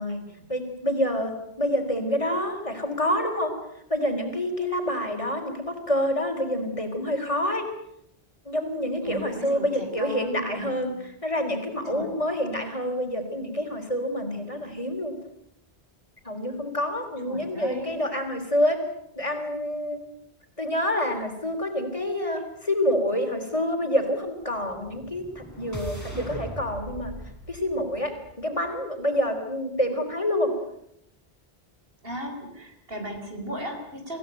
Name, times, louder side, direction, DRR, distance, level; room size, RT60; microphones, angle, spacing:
voice 1, 0.5-3.6 3.9-7.7 8.5-10.9 11.2-15.1 16.2-18.9 19.2-20.0 20.6-27.1 27.5-30.5, equal, 30° left, 4 dB, 3.9 m, -27 dB
voice 2, 9.0-11.0 11.8-12.1 17.2-18.0 32.0-34.2, equal, 65° right, 4 dB, 5.1 m, -37 dB
sound 1, 24.6-28.8, right 1 dB, 15° right, 5.3 m, -40 dB
25.5 x 16.5 x 9.1 m, 0.77 s
omnidirectional pair, 1.0 m